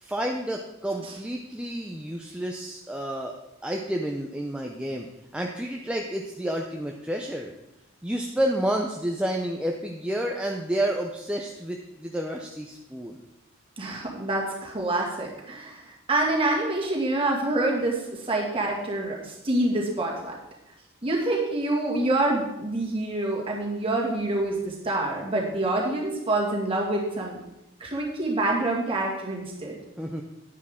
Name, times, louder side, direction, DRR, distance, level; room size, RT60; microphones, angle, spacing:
voice 1, 0.0-3.3 3.6-5.1 5.3-7.5 8.0-13.2 30.0-30.2, right 1 dB, 5° right, 1 dB, 0.5 m, -30 dB
voice 2, 13.8-20.3 21.0-27.4 27.8-29.8, right 2 dB, 25° right, -2 dB, 2.1 m, -26 dB
10.0 x 9.7 x 3.7 m, 0.91 s
head